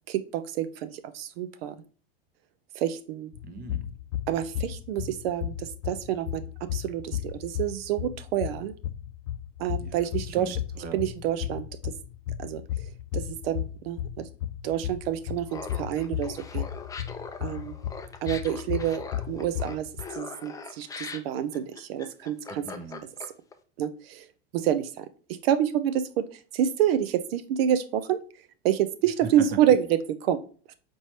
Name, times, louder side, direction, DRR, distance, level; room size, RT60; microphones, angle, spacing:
voice 1, 0.1-1.8 2.7-3.3 4.3-8.7 9.6-10.6 10.9-11.9 12.4-14.3 14.6-16.7 17.4-17.8 18.2-22.7 23.8-24.3 24.5-28.2 28.6-30.4 30.7-30.8, right 10 dB, 75° right, 12 dB, 0.5 m, -28 dB
sound 1, 3.3-20.0, left 11 dB, 80° left, 0.5 m, -35 dB
voice 2, 3.4-3.9 9.8-11.0 22.5-23.0 29.2-29.6, right 5 dB, 30° right, 8 dB, 0.7 m, -40 dB
Laughter, 15.5-23.5, left 5 dB, 10° left, 0.4 m, -41 dB
4.5 x 3.1 x 2.8 m, 0.41 s
supercardioid pair, 115°, 30 cm